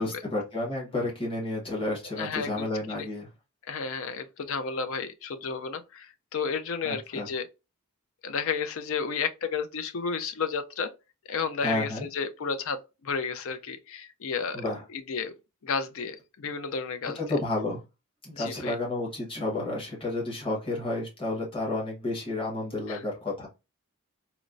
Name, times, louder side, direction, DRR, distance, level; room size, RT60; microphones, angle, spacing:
voice 1, 0.0-3.3 6.8-7.3 11.6-12.1 14.5-14.8 17.1-17.8 18.2-23.5, left 2 dB, 25° left, 1.1 m, -31 dB
voice 2, 2.2-3.1 3.7-7.5 8.2-10.9 11.3-14.6 14.9-15.3 15.6-17.2 18.3-18.8 22.9-23.0, left 5 dB, 60° left, 0.5 m, -32 dB
4.2 x 2.0 x 2.5 m
head